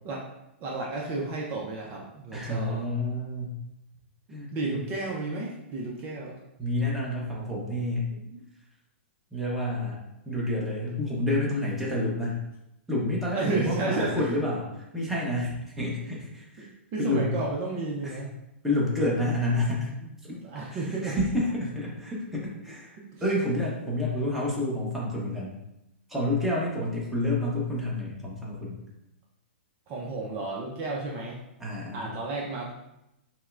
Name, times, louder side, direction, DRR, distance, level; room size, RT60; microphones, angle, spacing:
voice 1, 0.6-2.8 4.5-6.3 8.1-8.4 13.3-14.3 16.6-18.3 19.8-21.2 23.1-23.2 29.9-31.4 31.9-32.7, right 3 dB, 35° right, -3 dB, 0.6 m, -32 dB
voice 2, 2.3-3.6 4.3-4.8 6.6-8.1 9.3-10.0 10.2-12.4 12.9-16.7 17.0-17.4 18.0-18.2 18.6-19.9 20.7-23.0 23.2-25.5 26.1-28.8 31.6-32.1, left 1 dB, 5° right, -5 dB, 1.0 m, -29 dB
5.4 x 2.2 x 2.5 m, 0.88 s
hypercardioid pair, 125°, 6 cm